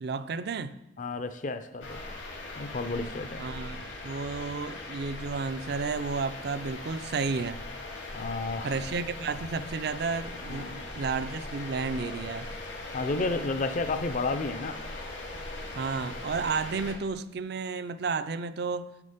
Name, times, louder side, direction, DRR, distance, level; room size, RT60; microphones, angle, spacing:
voice 1, 0.0-0.8 3.4-7.6 8.6-12.5 15.8-18.9, right 4 dB, 60° right, 0.4 m, -32 dB
voice 2, 1.0-2.0 2.6-3.4 8.1-8.7 10.5-10.8 12.9-14.8, left 3 dB, 45° left, 0.5 m, -31 dB
sound 1, 1.8-17.0, left 2 dB, 85° left, 2.4 m, -40 dB
8.4 x 8.3 x 5.0 m
head